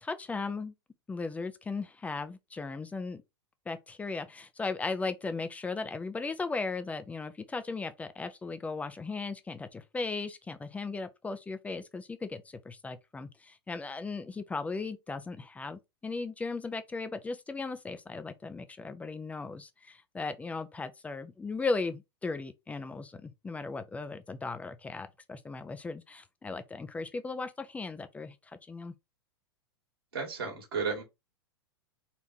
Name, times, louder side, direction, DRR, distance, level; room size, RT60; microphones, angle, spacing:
voice 1, 0.0-0.7 1.1-3.2 3.7-28.9, left 3 dB, 10° left, 0.5 m, -37 dB
voice 2, 30.1-31.0, right 5 dB, 65° right, 2.1 m, -33 dB
4.2 x 2.8 x 4.4 m
figure-of-eight pair, 95°, 14 cm